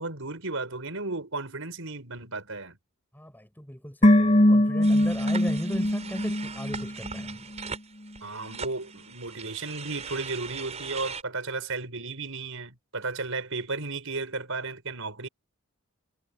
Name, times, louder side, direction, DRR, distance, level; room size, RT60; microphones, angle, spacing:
voice 1, 0.0-2.8 8.2-15.3, right 3 dB, 70° right, 5.2 m, -34 dB
voice 2, 3.1-7.5, equal, 10° left, 5.2 m, -37 dB
sound 1, 4.0-7.3 7.6-7.7, left 1 dB, 35° left, 2.4 m, -22 dB
sound 2, 4.8-11.2, right 5 dB, 30° right, 6.4 m, -40 dB
head